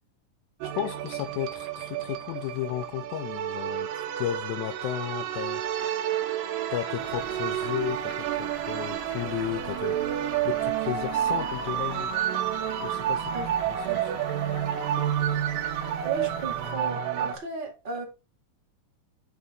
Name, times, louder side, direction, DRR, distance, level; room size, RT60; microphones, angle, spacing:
voice 1, 0.6-5.6 6.7-10.1 10.5-12.1 12.8-13.4 13.7-14.1, left 13 dB, 80° left, 1.7 m, -34 dB
sound 1, 0.6-17.4, right 11 dB, 85° right, 2.4 m, -30 dB
sound 2, 5.6-17.4, left 6 dB, 65° left, 1.4 m, -46 dB
sound 3, 7.0-16.7, right 6 dB, 70° right, 0.9 m, -48 dB
voice 2, 16.0-18.0, right 4 dB, 20° right, 1.4 m, -35 dB
8.2 x 3.8 x 3.6 m
omnidirectional pair, 3.8 m